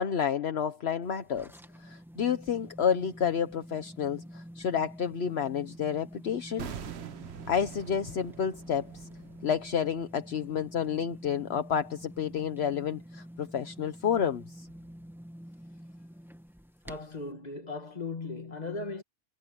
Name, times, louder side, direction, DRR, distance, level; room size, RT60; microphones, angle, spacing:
voice 1, 0.0-1.5 1.8-6.7 7.5-9.1 9.4-14.7, left 8 dB, 60° left, 1.2 m, -30 dB
sound 1, 1.0-17.3, equal, ahead, 1.1 m, -48 dB
sound 2, 6.6-11.6 11.9-12.0, right 8 dB, 65° right, 1.2 m, -46 dB
voice 2, 16.8-19.0, left 3 dB, 35° left, 2.1 m, -37 dB
omnidirectional pair, 1.2 m